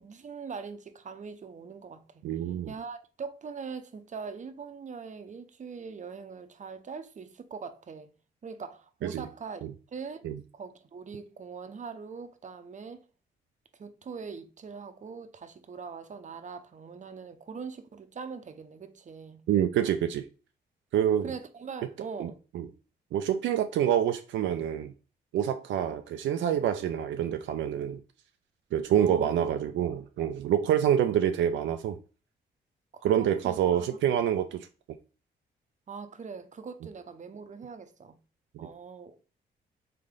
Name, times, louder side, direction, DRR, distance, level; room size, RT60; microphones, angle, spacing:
voice 1, 0.0-2.2 2.7-8.1 8.4-10.2 10.5-13.0 13.8-19.4 21.2-22.4 29.0-29.5 32.9-33.6 35.9-38.2 38.6-39.3, right 5 dB, 40° right, 0.7 m, -42 dB
voice 2, 2.2-2.7 9.0-9.3 9.6-9.7 10.2-10.4 19.5-20.2 20.9-21.3 22.2-22.7 23.1-24.9 25.3-28.0 28.7-32.0 33.0-34.7 38.5-38.7, right 10 dB, 80° right, 0.4 m, -27 dB
3.7 x 3.4 x 3.7 m
cardioid pair, 65°, 19 cm